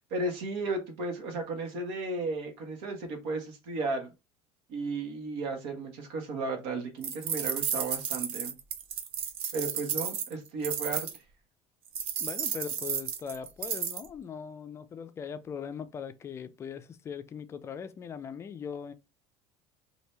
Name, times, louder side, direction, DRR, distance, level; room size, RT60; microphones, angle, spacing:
voice 1, 0.1-4.1 4.7-8.5 9.5-11.1, right 3 dB, 85° right, 1.3 m, -34 dB
sound 1, 7.0-11.2 12.0-14.1, right 8 dB, 45° right, 0.5 m, -33 dB
voice 2, 12.2-18.9, left 7 dB, 20° left, 0.3 m, -40 dB
2.8 x 2.6 x 3.2 m
cardioid pair, 160°, 13 cm